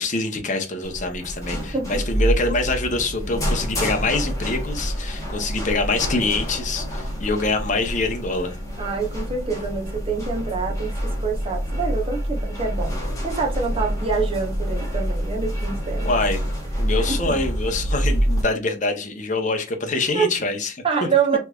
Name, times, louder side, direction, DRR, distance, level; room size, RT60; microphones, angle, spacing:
voice 1, 0.0-8.6 16.0-16.4 16.8-20.8, left 3 dB, 40° left, 0.9 m, -25 dB
sound 1, 0.8-18.4, equal, 15° left, 1.2 m, -27 dB
voice 2, 1.5-2.0 8.8-13.0 13.2-16.1 16.9-17.4 20.1-20.3 20.8-21.4, right 5 dB, 30° right, 0.9 m, -26 dB
3.2 x 3.2 x 2.3 m
head